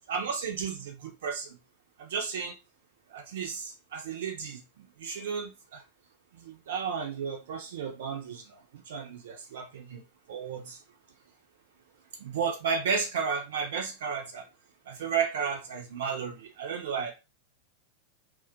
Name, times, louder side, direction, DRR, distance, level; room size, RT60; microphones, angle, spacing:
voice 1, 0.1-1.6 2.0-2.6 3.1-5.8 6.3-10.0 10.3-10.8 12.2-14.5 14.9-17.1, right 6 dB, 60° right, 0.3 m, -33 dB
2.3 x 2.1 x 2.5 m
figure-of-eight pair, 90°, 0 cm